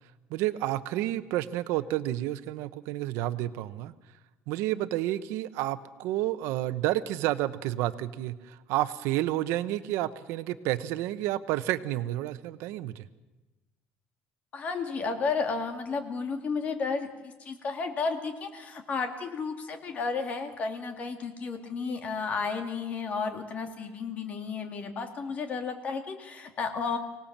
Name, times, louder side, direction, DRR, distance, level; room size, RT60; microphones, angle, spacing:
voice 1, 0.3-3.9 4.5-13.0, right 14 dB, 75° right, 13 dB, 1.0 m, -30 dB
voice 2, 14.5-27.0, left 4 dB, 35° left, 6 dB, 2.3 m, -32 dB
25.0 x 18.0 x 7.4 m, 1.1 s
cardioid pair, 170°, 4 cm